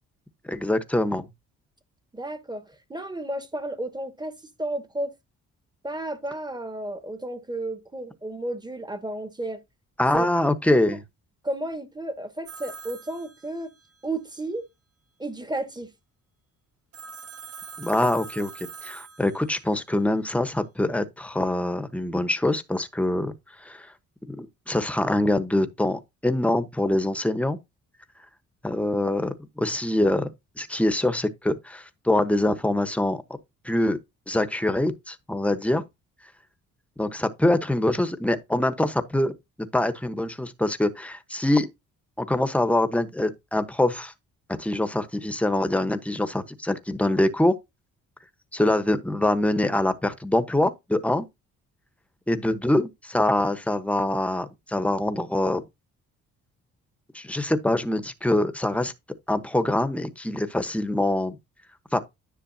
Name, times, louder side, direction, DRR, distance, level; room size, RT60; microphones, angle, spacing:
voice 1, 0.5-1.3 10.0-11.0 17.8-23.3 23.6-23.9 24.3-27.6 28.6-30.3 30.6-33.2 33.6-34.0 34.3-35.8 37.0-39.3 39.6-41.7 42.2-44.1 44.5-47.5 48.5-51.2 52.3-55.6 57.1-58.9 59.3-61.4 61.9-62.0, left 1 dB, 5° left, 1.1 m, -24 dB
voice 2, 2.1-5.1 5.8-9.6 10.1-10.3 10.6-11.0 11.4-13.7 14.0-14.6 15.2-15.9, right 1 dB, 15° right, 1.3 m, -33 dB
Telephone, 12.5-14.0 16.9-19.8, right 5 dB, 50° right, 1.6 m, -43 dB
10.0 x 6.8 x 2.8 m
cardioid pair, 90°, 30 cm